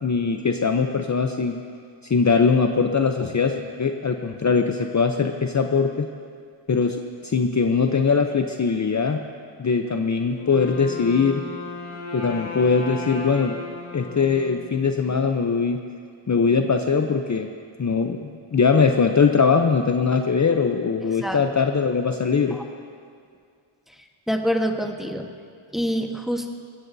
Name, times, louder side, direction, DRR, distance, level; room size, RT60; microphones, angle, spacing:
voice 1, 0.0-1.6 2.1-6.1 6.7-9.2 9.6-11.4 12.1-13.6 13.9-15.8 16.3-17.5 17.8-22.6, left 5 dB, 35° left, 5 dB, 0.7 m, -21 dB
Wind instrument woodwind instrument, 10.3-15.2, left 3 dB, 75° left, 1.8 m, -35 dB
voice 2, 24.3-25.3 25.7-26.5, equal, ahead, 3 dB, 1.3 m, -25 dB
20.5 x 16.5 x 2.7 m, 2.2 s
cardioid pair, 75°, 49 cm